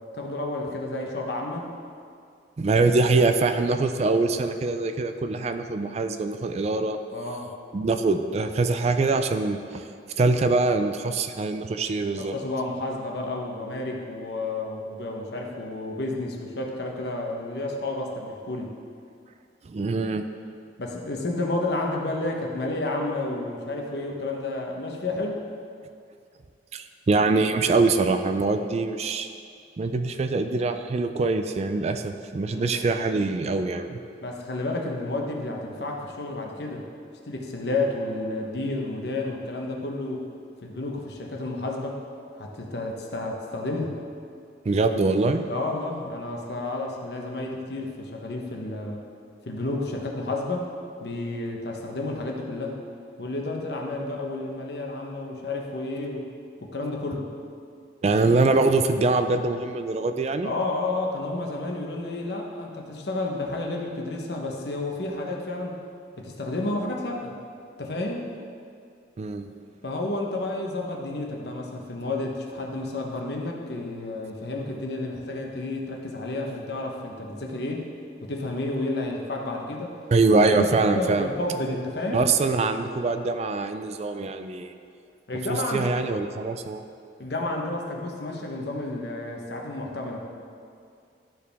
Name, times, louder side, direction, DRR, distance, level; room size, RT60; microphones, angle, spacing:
voice 1, 0.1-1.7 7.1-7.5 12.2-18.7 20.8-25.4 32.4-32.8 34.2-36.9 37.2-40.2 40.6-42.0 42.4-44.0 45.5-49.0 49.4-50.7 51.0-52.8 53.2-56.3 56.6-57.3 60.4-65.8 66.2-67.3 67.8-68.3 69.8-77.9 78.2-79.9 80.3-82.2 85.3-85.9 87.2-90.2, left 2 dB, 70° left, 0 dB, 0.9 m, -31 dB
voice 2, 2.6-7.0 7.7-9.8 10.2-12.4 19.6-20.2 26.7-29.3 29.8-34.0 44.7-45.4 58.0-60.5 69.2-69.5 80.1-81.3 82.1-84.7 85.5-86.8, right 3 dB, 35° right, 8 dB, 0.3 m, -23 dB
12.0 x 4.7 x 3.4 m, 2.4 s
head